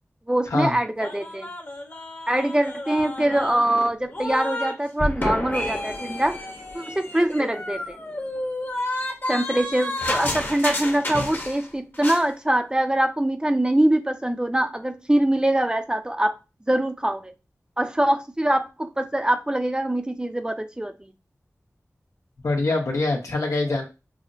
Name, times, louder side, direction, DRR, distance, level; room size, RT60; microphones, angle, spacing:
voice 1, 0.3-1.5 2.3-6.4 6.7-8.0 9.3-16.3 16.7-17.3 17.8-20.9, right 1 dB, 15° right, 7 dB, 0.5 m, -23 dB
sound 1, 1.0-4.7 5.0-11.7 11.9-12.2, left 1 dB, 40° left, 1.0 m, -31 dB
voice 2, 22.4-23.8, left 2 dB, 85° left, 1 dB, 1.1 m, -24 dB
6.0 x 2.1 x 2.6 m, 0.28 s
wide cardioid pair, 65°, 5 cm